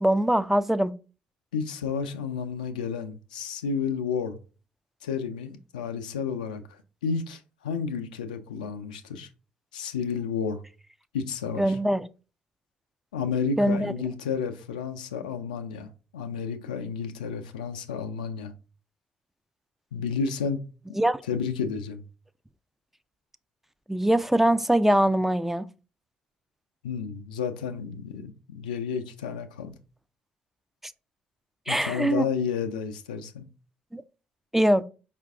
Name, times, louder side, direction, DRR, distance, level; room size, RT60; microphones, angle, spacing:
voice 1, 0.0-0.9 11.6-12.1 13.6-13.9 21.0-21.2 23.9-25.6 31.7-32.3 33.9-34.0 34.5-34.9, right 1 dB, 5° right, 0.3 m, -22 dB
voice 2, 1.5-4.4 5.0-9.3 9.7-10.6 11.1-11.8 13.1-18.5 19.9-20.6 20.9-21.0 21.3-22.0 26.8-29.7 31.7-33.5, left 6 dB, 85° left, 0.3 m, -31 dB
4.5 x 2.4 x 3.4 m
hypercardioid pair, 45°, 4 cm